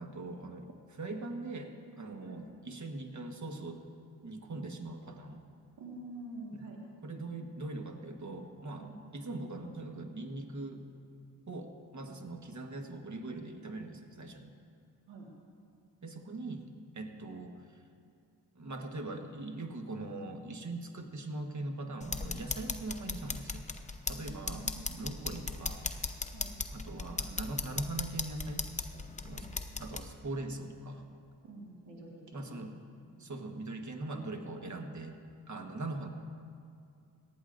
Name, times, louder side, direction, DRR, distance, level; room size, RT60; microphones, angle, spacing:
voice 1, 0.0-3.8 4.2-5.4 6.5-6.6 7.0-10.8 11.5-14.5 16.0-16.6 16.9-17.8 18.5-23.6 24.1-25.9 26.7-28.7 29.2-29.5 29.8-31.0 32.3-32.8 33.2-35.2 35.5-36.1, right 2 dB, 45° right, 5 dB, 1.4 m, -41 dB
voice 2, 5.8-6.8 8.8-8.9 15.1-15.3 24.5-25.0 26.3-26.6 29.3-29.5 31.4-32.6 33.2-33.3, right 2 dB, 80° right, -2 dB, 1.8 m, -47 dB
sound 1, 22.0-30.0, left 3 dB, 15° left, 0.9 m, -38 dB
18.0 x 12.5 x 2.6 m, 2.5 s
supercardioid pair, 40°, 41 cm